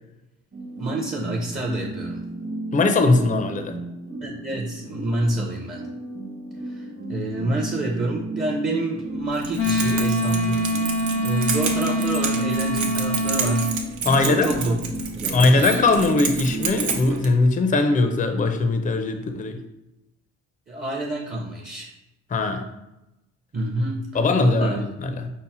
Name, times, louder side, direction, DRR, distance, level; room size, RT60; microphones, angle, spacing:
sound 1, 0.5-17.1, right 2 dB, 45° right, 1.2 m, -34 dB
voice 1, 0.8-2.2 4.2-5.8 6.6-10.7 11.2-13.8 14.2-14.8 15.1-15.6 20.7-21.9 23.5-24.1 24.4-24.8, right 1 dB, 30° right, -1 dB, 0.7 m, -27 dB
voice 2, 2.7-3.8 14.1-14.6 15.3-19.6 22.3-22.6 24.1-25.3, left 3 dB, 25° left, 7 dB, 0.5 m, -20 dB
Keys jangling, 9.3-17.3, right 5 dB, 70° right, 0.8 m, -30 dB
Wind instrument woodwind instrument, 9.6-13.7, equal, 90° left, 1.2 m, -24 dB
5.5 x 2.1 x 4.1 m, 0.94 s
cardioid pair, 90°, 30 cm